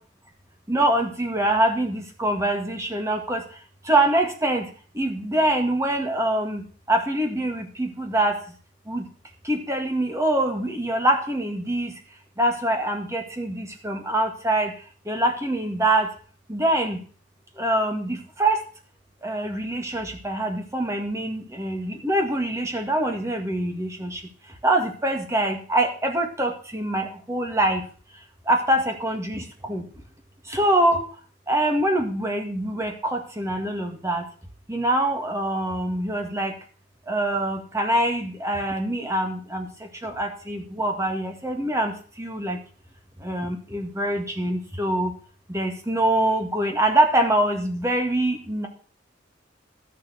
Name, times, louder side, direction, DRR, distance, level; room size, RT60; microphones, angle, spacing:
voice 1, 0.7-3.4 3.9-4.7 5.0-8.4 8.9-9.1 9.4-11.9 12.4-14.7 15.1-16.1 16.5-17.0 17.6-18.6 19.2-24.2 24.6-27.8 28.5-29.8 30.5-31.1 31.5-34.2 34.7-36.5 37.1-39.7 40.0-42.6 43.2-45.1 45.5-48.7, right 1 dB, 15° right, 4 dB, 1.9 m, -24 dB
12.5 x 6.9 x 6.3 m, 0.41 s
head